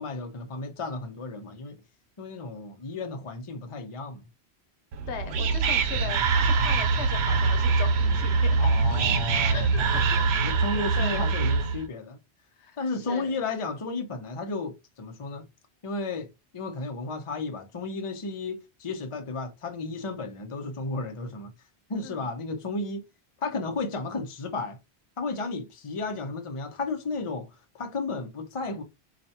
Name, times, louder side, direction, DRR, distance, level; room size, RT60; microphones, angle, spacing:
voice 1, 0.0-1.8 2.2-4.2 5.9-6.1 8.6-12.2 12.8-15.5 15.8-21.5 21.9-23.0 23.4-24.8 25.2-28.8, left 3 dB, 35° left, 0.7 m, -33 dB
Whispering, 4.9-11.8, right 4 dB, 80° right, 0.9 m, -24 dB
voice 2, 5.1-8.6 9.5-10.3 10.7-11.3 12.6-13.3 22.0-22.3, left 6 dB, 85° left, 1.1 m, -39 dB
4.4 x 2.5 x 2.7 m
omnidirectional pair, 1.1 m